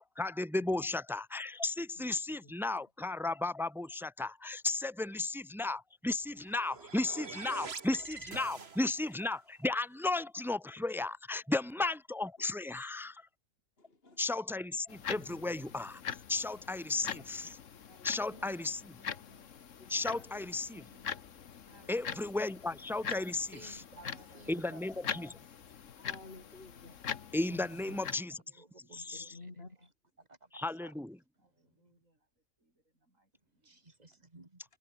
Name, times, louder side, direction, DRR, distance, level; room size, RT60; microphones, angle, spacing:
voice 1, 0.0-13.2 14.2-16.0 16.3-17.6 18.0-18.8 19.9-20.8 21.9-23.4 24.5-25.3 27.3-28.4 29.1-29.2 30.6-31.1, left 2 dB, 5° right, 0.3 m, -34 dB
voice 2, 0.6-0.9 1.8-2.9 7.5-7.7 8.6-8.7 12.4-12.5 13.8-14.2 17.4-17.5 17.9-18.6 19.3-19.4 19.8-20.4 25.9-27.1 27.5-28.1 29.0-29.9, left 2 dB, 50° left, 3.4 m, -54 dB
voice 3, 5.0-5.8 13.0-13.1 16.6-16.7 18.3-19.5 20.1-21.1 21.7-22.6 23.6-24.8 27.8-29.9 31.4-33.8 34.2-34.3, right 1 dB, 90° right, 8.2 m, -66 dB
sound 1, 6.2-9.2, right 5 dB, 55° right, 1.9 m, -45 dB
sound 2, 14.9-28.1, left 7 dB, 75° left, 1.5 m, -43 dB
voice 4, 23.5-25.3 27.7-28.2 28.6-29.7 30.2-31.0 31.5-32.0 33.3-34.6, right 2 dB, 30° right, 2.8 m, -57 dB
omnidirectional pair, 1.3 m